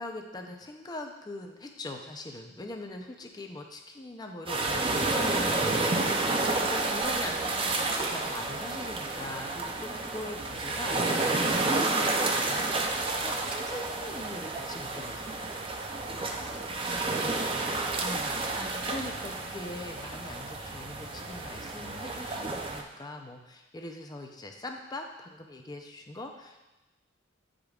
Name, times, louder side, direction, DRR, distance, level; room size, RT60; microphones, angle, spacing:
voice 1, 0.0-15.6 18.0-18.4 18.8-26.7, left 2 dB, 20° left, 3 dB, 0.6 m, -41 dB
sound 1, 4.5-22.8, right 2 dB, 30° right, 0.5 m, -30 dB
voice 2, 9.8-10.2 16.1-18.0 18.5-18.8, right 1 dB, 80° right, -2 dB, 1.5 m, -49 dB
9.1 x 5.1 x 2.4 m, 1.1 s
head